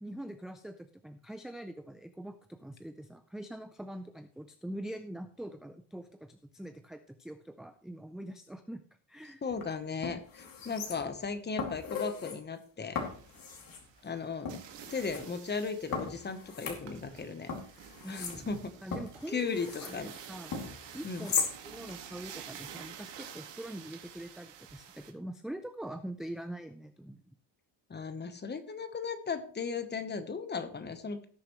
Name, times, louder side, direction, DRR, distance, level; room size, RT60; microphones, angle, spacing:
voice 1, 0.0-8.8 9.1-9.4 18.0-18.5 18.8-20.5 20.9-21.3 21.6-27.3, right 1 dB, ahead, 7 dB, 0.4 m, -43 dB
voice 2, 9.4-13.0 14.0-14.5 14.9-17.5 18.1-18.7 19.3-20.1 21.0-21.3 27.9-31.3, left 5 dB, 25° left, 10 dB, 1.0 m, -36 dB
sound 1, 9.5-9.6 10.0-11.3 11.6-12.4 13.0-13.8 14.5-15.2 15.9-17.2 17.5-20.0 20.5-21.5 21.9-22.0, left 5 dB, 50° left, 2.5 m, -38 dB
sound 2, 12.9-25.1, right 8 dB, 75° right, 1.9 m, -50 dB
18.0 x 6.9 x 3.1 m, 0.44 s
cardioid pair, 150°, 43 cm